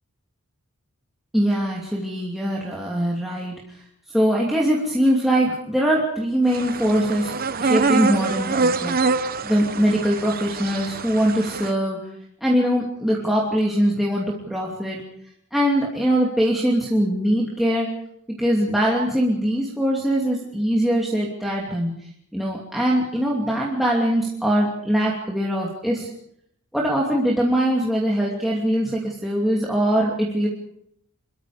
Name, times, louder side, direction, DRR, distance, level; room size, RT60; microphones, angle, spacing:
voice 1, 1.3-3.8 4.1-7.3 7.6-12.0 12.4-15.0 15.5-17.9 18.4-21.9 22.3-26.1 26.7-30.5, equal, ahead, -4 dB, 2.7 m, -22 dB
sound 1, 6.5-11.7, right 4 dB, 40° right, 1.0 m, -25 dB
27.0 x 22.5 x 5.1 m, 0.72 s
head